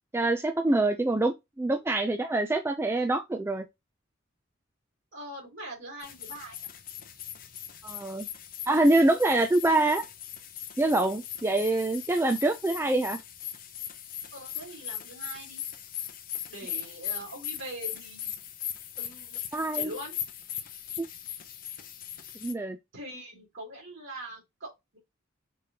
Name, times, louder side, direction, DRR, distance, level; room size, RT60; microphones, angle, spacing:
voice 1, 0.1-3.6 7.8-8.3 8.7-10.0 10.8-13.2 19.5-19.9 21.0-21.1 22.4-22.8, right 2 dB, 10° right, 0.3 m, -25 dB
voice 2, 5.1-6.6 14.3-15.6 16.5-18.3 19.0-19.4 19.7-20.2 22.9-25.0, right 1 dB, 60° right, 2.9 m, -42 dB
sound 1, 6.0-22.5, left 10 dB, 40° left, 0.6 m, -39 dB
5.2 x 3.4 x 2.8 m
head